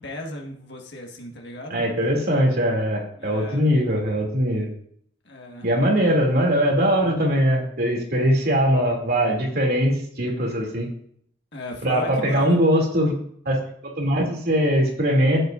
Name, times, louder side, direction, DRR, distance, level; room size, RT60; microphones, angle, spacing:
voice 1, 0.0-1.9 3.2-3.7 5.2-5.8 11.5-12.6, left 1 dB, 65° left, 1 dB, 1.7 m, -36 dB
voice 2, 1.7-4.7 5.6-10.9 11.8-13.1 13.4-13.6 13.8-15.4, equal, 55° right, 0 dB, 2.7 m, -21 dB
14.5 x 8.0 x 2.6 m, 0.64 s
head